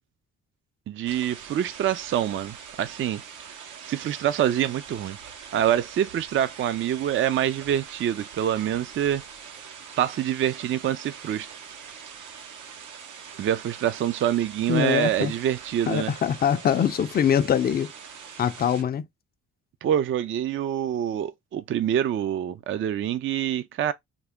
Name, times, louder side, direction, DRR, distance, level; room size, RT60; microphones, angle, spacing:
voice 1, 0.9-3.2 3.8-5.2 5.5-9.2 10.0-11.6 13.4-16.1 19.8-23.9, right 10 dB, 45° right, 0.4 m, -26 dB
sound 1, 1.1-18.8, right 7 dB, 80° right, 0.8 m, -43 dB
voice 2, 14.7-15.3 15.9-17.9 18.4-19.0, left 8 dB, 30° left, 0.4 m, -23 dB
3.5 x 2.1 x 3.5 m
cardioid pair, 90°, 30 cm